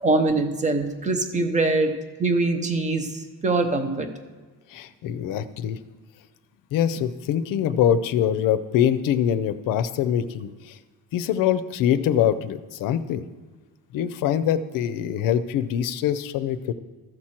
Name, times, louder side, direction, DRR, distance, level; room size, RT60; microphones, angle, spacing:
voice 1, 0.0-1.9 2.2-4.1, right 3 dB, 20° right, 5 dB, 0.8 m, -23 dB
voice 2, 4.7-5.8 6.7-10.8 11.1-13.2 13.9-16.7, left 9 dB, 60° left, 14 dB, 0.6 m, -24 dB
14.5 x 6.1 x 4.4 m, 1.3 s
cardioid pair, 165°, 36 cm